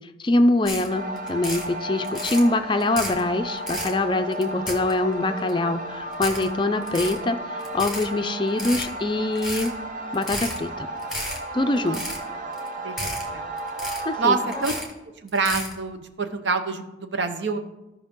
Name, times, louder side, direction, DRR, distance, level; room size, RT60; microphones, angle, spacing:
voice 1, 0.2-9.7 10.1-10.9 11.5-12.0 14.1-14.4, left 2 dB, 25° left, 8 dB, 0.4 m, -24 dB
sound 1, 0.6-0.9 1.2-1.7 2.0-2.4 2.8-3.2 3.6-3.9 4.3-5.1 5.5-5.6 6.1-6.5 6.8-7.2 7.6-8.1 8.5-8.9 9.3-9.7 10.1-10.6 11.0-11.4 11.8-12.2 12.5-12.7 13.0-13.3 13.6-14.1 14.5-14.9 15.3-15.7, left 1 dB, ahead, 1.4 m, -32 dB
sound 2, 0.9-14.8, right 1 dB, 45° right, 0.7 m, -34 dB
voice 2, 12.8-13.5 14.2-14.7 15.2-17.6, right 4 dB, 75° right, 8 dB, 0.8 m, -26 dB
14.0 x 5.4 x 3.7 m, 1.0 s
head